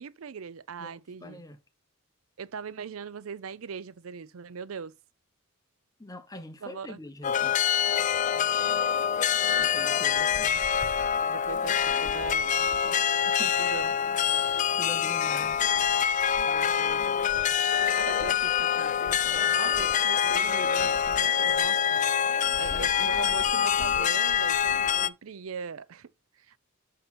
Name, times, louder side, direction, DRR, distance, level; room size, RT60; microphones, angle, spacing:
voice 1, 0.0-1.4 2.4-4.9 6.6-7.0 8.3-8.8 11.3-14.0 16.4-26.6, right 6 dB, 85° right, 0.5 m, -41 dB
voice 2, 0.8-1.6 6.0-7.6 9.6-10.6 13.4-13.7 14.5-15.6 22.5-22.8, left 1 dB, 15° left, 0.8 m, -44 dB
sound 1, 7.2-25.1, left 8 dB, 35° left, 0.3 m, -25 dB
5.9 x 5.2 x 4.2 m
head